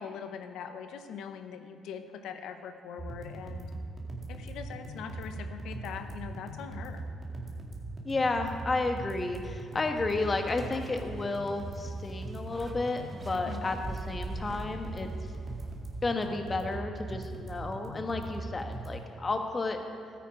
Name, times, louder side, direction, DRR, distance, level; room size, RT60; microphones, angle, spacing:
voice 1, 0.0-3.7 4.3-7.0 13.3-13.6, left 7 dB, 80° left, 8 dB, 0.8 m, -42 dB
sound 1, 3.0-19.0, right 2 dB, 40° right, 2.0 m, -40 dB
voice 2, 8.0-15.1 16.0-19.8, left 3 dB, 30° left, 5 dB, 1.3 m, -32 dB
sound 2, 10.1-16.5, right 2 dB, 20° right, 1.1 m, -44 dB
13.0 x 9.2 x 4.9 m, 2.5 s
cardioid pair, 90°, 0 cm